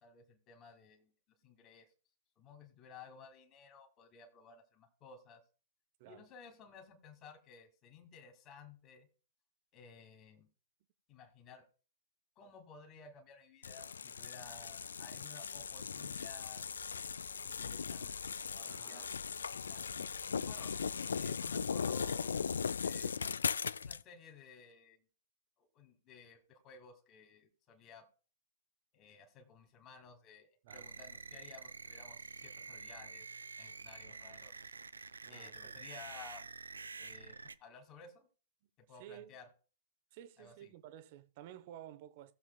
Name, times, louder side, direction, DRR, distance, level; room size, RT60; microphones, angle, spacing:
voice 1, 0.0-1.1 1.4-1.9 2.4-5.4 6.1-9.1 9.7-10.5 11.1-11.7 12.4-16.6 17.4-19.8 20.4-20.7 21.1-23.2 23.8-25.0 25.6-28.1 28.9-33.3 33.6-34.7 35.3-36.5 37.0-38.3 38.8-39.5 40.4-40.7, left 5 dB, 25° left, 2.1 m, -56 dB
sound 1, 13.6-24.0, left 6 dB, 65° left, 0.3 m, -38 dB
voice 2, 18.6-19.1 30.6-30.9 33.6-33.8 34.9-35.8 36.9-37.1 38.6-38.7 39.0-39.4 40.1-42.3, right 11 dB, 40° right, 0.8 m, -54 dB
sound 2, 30.7-37.6, right 4 dB, 75° right, 0.4 m, -48 dB
18.0 x 7.3 x 2.3 m
figure-of-eight pair, 110°, 0 cm